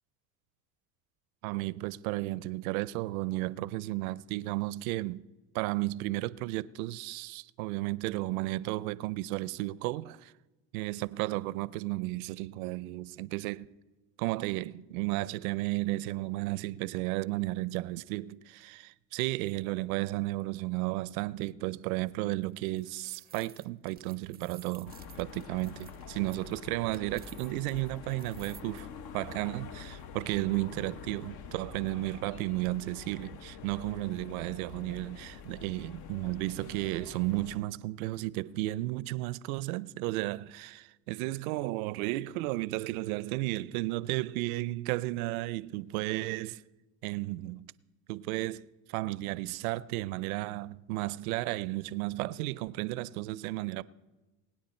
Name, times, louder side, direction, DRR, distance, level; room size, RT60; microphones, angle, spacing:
voice 1, 1.4-5.2 5.5-10.3 10.7-13.7 14.2-28.9 29.1-46.6 47.0-47.7 48.1-53.8, right 19 dB, 80° right, 0.5 m, -33 dB
sound 1, 22.5-28.8, right 9 dB, 25° right, 0.5 m, -55 dB
sound 2, 24.9-37.6, left 6 dB, 60° left, 1.0 m, -46 dB
20.5 x 9.4 x 4.3 m
supercardioid pair, 90°, 42 cm